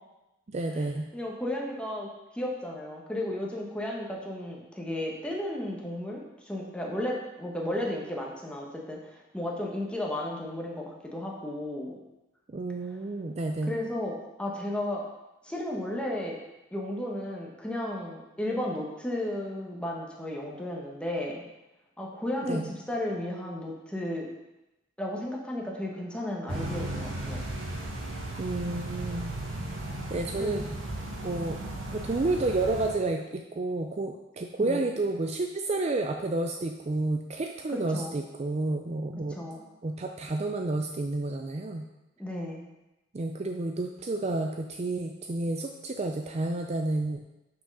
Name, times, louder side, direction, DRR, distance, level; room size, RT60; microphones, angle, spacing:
voice 1, 0.5-1.1 12.5-13.8 22.5-22.7 28.4-29.3 30.1-30.6 31.2-31.6 31.9-39.4 39.8-41.9 43.1-47.2, right 2 dB, 35° right, 4 dB, 0.4 m, -30 dB
voice 2, 1.1-2.1 2.3-12.0 13.6-14.1 14.4-15.0 15.4-16.4 16.7-21.4 22.0-24.3 25.0-27.4 30.4-30.6 34.7-34.9 37.9-38.2 39.3-39.6 42.2-42.6, left 1 dB, 5° left, -2 dB, 1.1 m, -34 dB
sound 1, 26.5-32.9, right 1 dB, 75° right, 1.6 m, -35 dB
6.2 x 5.9 x 5.4 m, 0.98 s
head